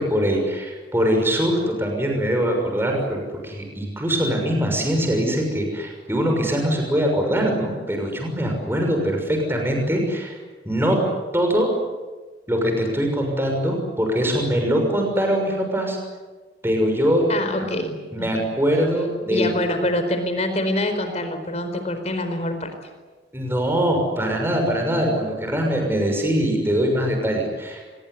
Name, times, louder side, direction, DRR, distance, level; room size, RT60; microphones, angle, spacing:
voice 1, 0.0-10.4 10.6-11.7 12.5-16.0 16.6-17.7 18.1-19.6 23.3-27.8, equal, 15° right, 2 dB, 6.2 m, -22 dB
voice 2, 17.3-18.3 19.3-22.7, left 1 dB, 35° left, 8 dB, 4.6 m, -25 dB
25.5 x 22.0 x 9.8 m, 1.3 s
head